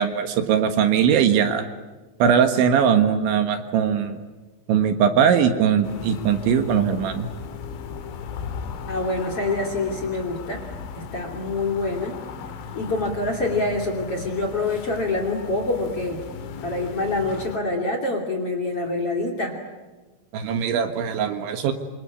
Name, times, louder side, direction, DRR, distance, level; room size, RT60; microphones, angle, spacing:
voice 1, 0.0-1.7 2.2-4.2 4.7-7.3 20.3-21.7, right 8 dB, 70° right, 7 dB, 3.6 m, -20 dB
sound 1, 5.8-17.6, left 6 dB, 70° left, 4.2 m, -37 dB
voice 2, 8.9-10.6 10.9-12.2 12.7-16.2 16.6-19.6, left 2 dB, 35° left, 3 dB, 3.0 m, -26 dB
27.0 x 26.0 x 8.6 m, 1.2 s
omnidirectional pair, 5.9 m